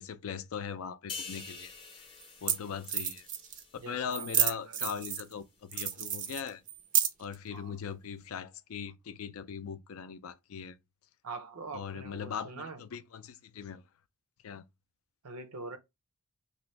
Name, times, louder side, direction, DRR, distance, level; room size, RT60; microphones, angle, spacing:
voice 1, 0.0-1.7 2.4-3.3 3.9-6.6 7.2-10.8 11.7-13.8 14.4-14.7, left 7 dB, 65° left, 0.4 m, -40 dB
sound 1, 1.1-4.6 5.0-5.2, left 5 dB, 25° left, 0.6 m, -46 dB
sound 2, 1.4-1.5 2.2-2.3 2.5-2.6 2.8-3.6 4.1-5.3 5.7-7.3, right 9 dB, 35° right, 0.4 m, -30 dB
voice 2, 3.8-4.9 7.5-7.8 11.2-12.8 15.2-15.8, right 3 dB, 85° right, 0.7 m, -44 dB
3.1 x 2.6 x 3.1 m
head